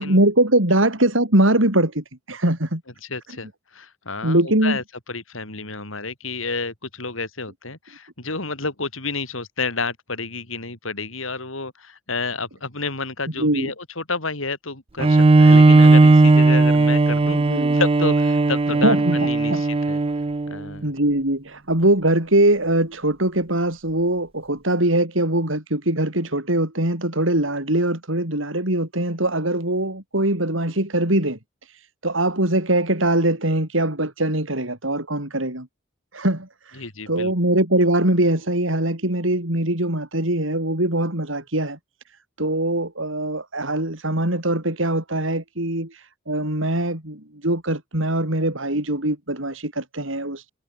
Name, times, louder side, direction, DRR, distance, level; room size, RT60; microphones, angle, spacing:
voice 1, 0.0-2.8 4.2-4.8 13.4-13.7 17.3-17.8 18.8-19.2 19.5-19.6 20.8-31.4 31.7-35.7 36.1-41.8 42.4-50.5, right 1 dB, 70° right, 5.9 m, -22 dB
voice 2, 3.0-4.8 5.1-17.4 17.7-20.0 20.5-20.9 36.8-37.3, left 3 dB, 80° left, 6.7 m, -30 dB
Bowed string instrument, 15.0-20.6, right 3 dB, 30° right, 0.4 m, -16 dB
head